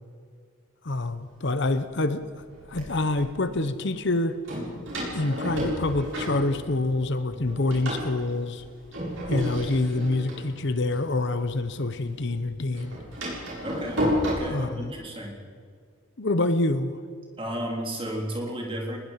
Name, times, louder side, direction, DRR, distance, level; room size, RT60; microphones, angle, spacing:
voice 1, 0.8-2.2 2.7-4.4 5.1-8.6 9.3-13.0 14.5-14.9 16.2-17.0, left 2 dB, 55° left, 10 dB, 1.0 m, -26 dB
Door, 1.3-1.4 2.1-3.2 4.4-7.0 7.3-11.8 12.1-14.3, equal, 60° right, 7.6 m, -32 dB
voice 2, 13.6-15.4 17.4-19.0, equal, 25° right, 0 dB, 3.5 m, -33 dB
22.0 x 20.5 x 5.8 m, 2.1 s
head